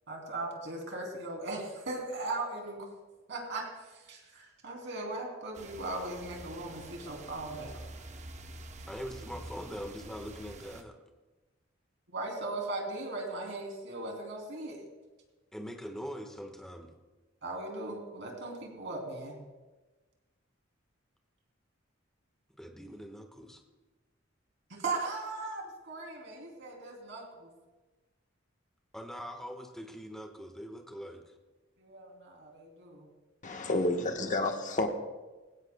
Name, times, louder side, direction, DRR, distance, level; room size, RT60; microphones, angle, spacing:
voice 1, 0.1-2.9 3.3-7.7 12.1-14.8 17.4-19.4 24.7-27.5 31.8-33.1 33.7-33.8, right 2 dB, 65° right, 3.0 m, -38 dB
sound 1, 5.5-10.8, right 2 dB, 35° right, 0.8 m, -47 dB
voice 2, 8.9-11.0 15.5-16.9 22.6-23.6 28.9-31.3 33.7-34.3, equal, ahead, 1.3 m, -43 dB
voice 3, 33.4-34.9, left 2 dB, 40° left, 1.1 m, -30 dB
19.0 x 16.5 x 2.2 m
head